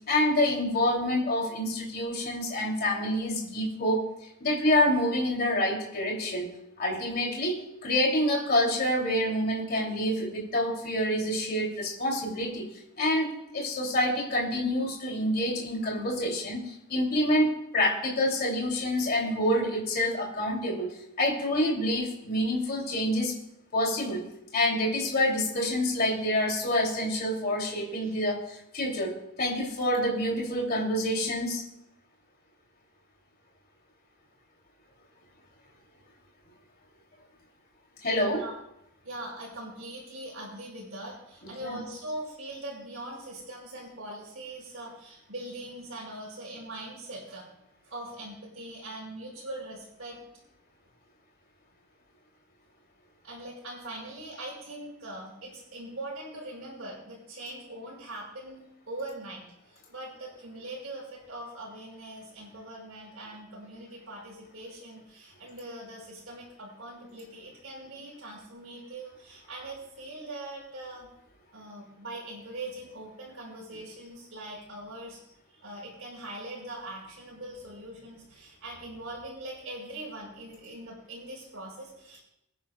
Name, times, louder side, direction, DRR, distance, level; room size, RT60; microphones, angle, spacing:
voice 1, 0.1-4.1 4.4-6.5 6.8-12.6 13.0-23.3 23.7-24.2 24.5-31.6 38.0-38.4 41.6-41.8, left 1 dB, 45° left, -2 dB, 2.9 m, -27 dB
voice 2, 39.0-47.5 47.8-50.3 53.2-71.1 71.5-75.2 75.5-82.2, right 1 dB, 65° right, -8 dB, 5.0 m, -42 dB
25.5 x 10.0 x 2.3 m, 0.82 s
head